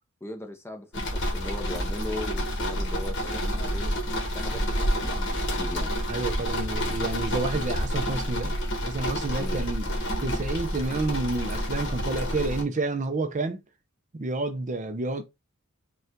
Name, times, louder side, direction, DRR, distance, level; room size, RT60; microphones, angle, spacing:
voice 1, 0.2-0.9 1.1-3.9 4.3-5.9 9.4-9.6, left 1 dB, 10° left, 0.7 m, -38 dB
sound 1, 0.9-12.6, equal, 60° left, 1.5 m, -29 dB
voice 2, 6.1-8.6 8.8-9.9 10.2-13.6 14.1-15.2, right 2 dB, 35° right, 0.6 m, -30 dB
5.3 x 2.4 x 3.6 m
head